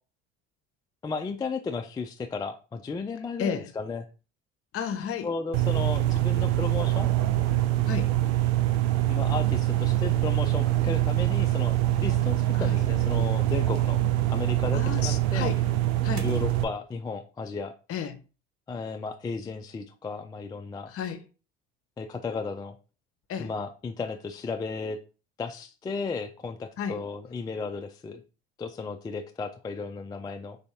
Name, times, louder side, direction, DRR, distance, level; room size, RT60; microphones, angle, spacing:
voice 1, 1.0-4.0 5.2-7.1 9.1-14.0 14.3-15.5 16.2-17.7 18.7-20.9 22.0-22.8 23.4-25.0 25.4-28.2 28.6-30.6, left 4 dB, 15° left, 0.3 m, -34 dB
voice 2, 4.7-5.3 7.9-8.1 12.5-12.9 14.7-15.6 16.0-16.3 17.9-18.2 20.9-21.3 23.3-23.5 26.8-27.0, left 7 dB, 45° left, 0.7 m, -32 dB
sound 1, 5.5-16.6, right 14 dB, 75° right, 0.5 m, -24 dB
4.0 x 2.6 x 3.4 m
hypercardioid pair, 70°, 32 cm